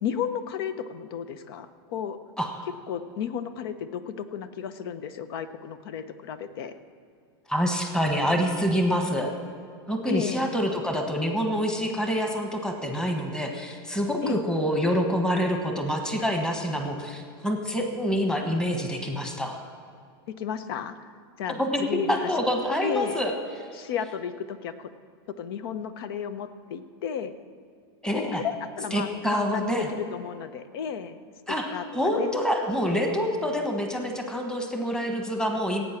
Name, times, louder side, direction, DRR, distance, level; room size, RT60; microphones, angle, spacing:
voice 1, 0.0-2.2 2.9-6.7 10.1-10.5 14.2-14.4 20.3-21.1 21.4-22.3 22.8-23.2 23.7-24.9 25.4-27.3 28.1-31.2 31.5-32.4, left 8 dB, 65° left, 12 dB, 0.9 m, -33 dB
voice 2, 7.5-9.3 9.9-19.6 21.6-23.3 28.0-28.4 28.9-29.9 31.5-35.8, equal, 5° left, 3 dB, 1.4 m, -26 dB
16.5 x 8.8 x 6.0 m, 2.3 s
supercardioid pair, 140°, 13 cm